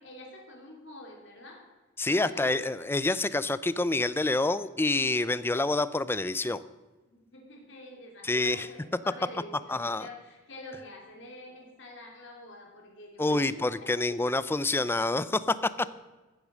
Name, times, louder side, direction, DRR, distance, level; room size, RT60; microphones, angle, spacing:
voice 1, 0.0-1.6 2.1-2.9 7.1-14.3 14.8-15.0 15.7-15.9, left 1 dB, 65° left, 0 dB, 3.1 m, -47 dB
voice 2, 2.0-6.6 8.2-8.7 9.7-10.1 13.2-15.9, left 2 dB, 10° left, 16 dB, 0.4 m, -27 dB
15.0 x 8.5 x 6.2 m, 1.2 s
head